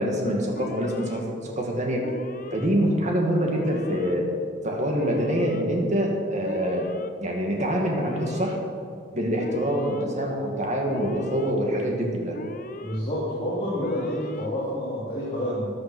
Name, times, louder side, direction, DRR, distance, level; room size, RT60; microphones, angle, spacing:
voice 1, 0.0-2.0 2.5-4.3 4.6-6.9 7.2-8.6 9.1-12.4, equal, 35° right, 0 dB, 2.2 m, -25 dB
Alarm, 0.5-1.2 2.0-2.7 3.5-4.2 5.0-5.6 6.4-7.1 7.9-8.6 9.4-10.0 10.9-11.5 12.3-13.0 13.8-14.5, left 2 dB, 45° left, 0.6 m, -39 dB
voice 2, 12.8-15.7, equal, 30° left, -9 dB, 3.4 m, -28 dB
14.5 x 10.5 x 6.2 m, 2.2 s
head